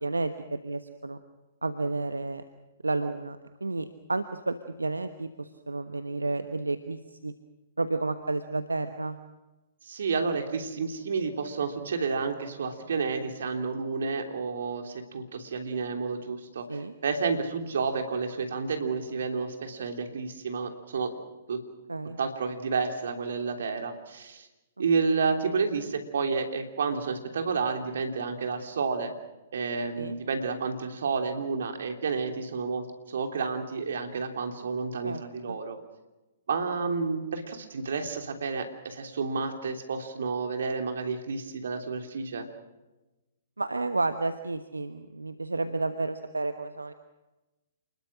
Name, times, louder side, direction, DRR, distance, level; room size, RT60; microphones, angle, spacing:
voice 1, 0.0-1.2 1.6-2.4 2.8-7.3 7.8-9.2 16.7-16.9 21.9-22.2 30.0-30.2 35.0-35.2 35.5-35.6 43.6-46.9, right 3 dB, 85° right, 10 dB, 1.1 m, -31 dB
voice 2, 9.8-21.1 21.5-21.6 22.2-24.5 24.8-29.1 29.5-35.8 36.5-42.5, right 4 dB, 65° right, 5 dB, 3.2 m, -30 dB
28.5 x 21.0 x 6.4 m, 1.1 s
figure-of-eight pair, 115°, 0 cm